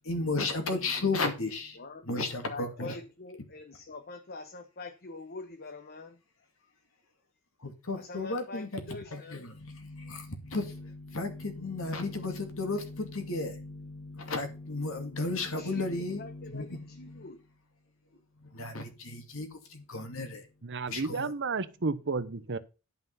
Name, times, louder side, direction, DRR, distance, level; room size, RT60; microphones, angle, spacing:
voice 1, 0.0-1.8 2.1-3.0 7.6-17.3 18.4-20.5 20.9-21.3, left 3 dB, 65° left, 2.5 m, -34 dB
voice 2, 1.7-6.2 8.0-9.5 15.6-17.4, left 3 dB, 45° left, 1.1 m, -44 dB
voice 3, 20.6-22.6, right 4 dB, 55° right, 0.8 m, -32 dB
11.0 x 5.7 x 5.5 m
head